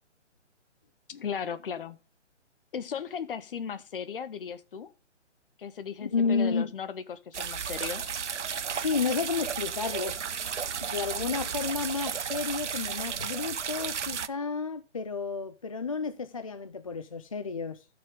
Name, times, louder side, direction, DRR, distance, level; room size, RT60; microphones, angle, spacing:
voice 1, 1.1-2.0 2.7-4.9 5.6-8.1, left 7 dB, 50° left, 0.9 m, -36 dB
voice 2, 6.0-6.7 8.7-10.2 10.8-17.9, left 5 dB, 30° left, 0.4 m, -31 dB
sound 1, 7.3-14.3, right 7 dB, 75° right, 0.8 m, -33 dB
13.0 x 5.8 x 3.6 m
figure-of-eight pair, 140°, 36 cm